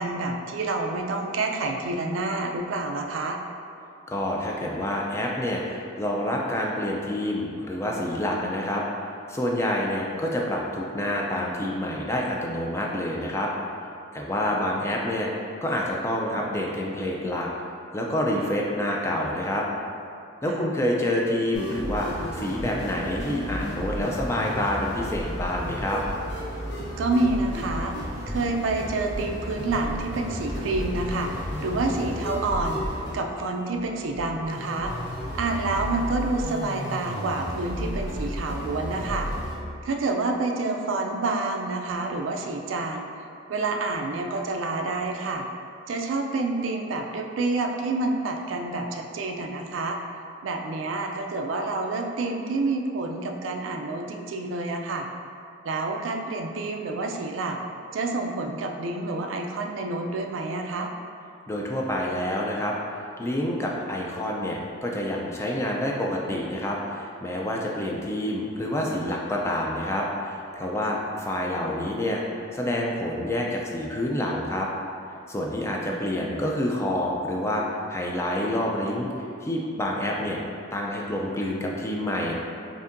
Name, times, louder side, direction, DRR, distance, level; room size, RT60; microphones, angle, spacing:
voice 1, 0.0-3.4 20.5-20.7 27.0-28.0 28.3-31.3 31.6-32.8 33.1-34.9 35.3-39.3 39.8-43.1 43.5-45.5 45.9-50.0 50.4-55.1 55.6-57.6 57.9-60.9 75.7-75.9, right 3 dB, 85° right, 3 dB, 0.4 m, -28 dB
voice 2, 4.1-8.8 9.3-13.5 14.1-15.3 15.6-17.5 17.9-19.6 20.4-26.0 61.5-62.7 63.2-72.2 72.5-74.7 75.3-77.6 77.9-79.1 79.4-80.4 80.7-82.3, left 1 dB, 15° left, -2 dB, 0.3 m, -27 dB
sound 1, 21.5-39.6, equal, 60° left, 0.7 m, -33 dB
5.0 x 2.6 x 2.5 m, 2.5 s
head